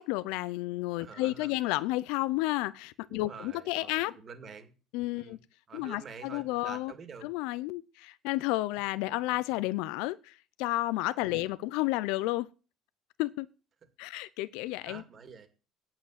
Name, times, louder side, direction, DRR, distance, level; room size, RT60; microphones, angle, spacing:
voice 1, 0.0-4.2 4.9-5.4 5.7-6.9 7.2-12.5 13.2-13.5 14.0-15.0, left 18 dB, 90° left, 0.5 m, -31 dB
voice 2, 1.0-1.5 3.1-4.7 5.1-5.4 5.7-7.3 11.2-11.5 14.8-15.5, right 5 dB, 30° right, 2.2 m, -47 dB
8.9 x 7.8 x 8.5 m
cardioid pair, 145°, 0 cm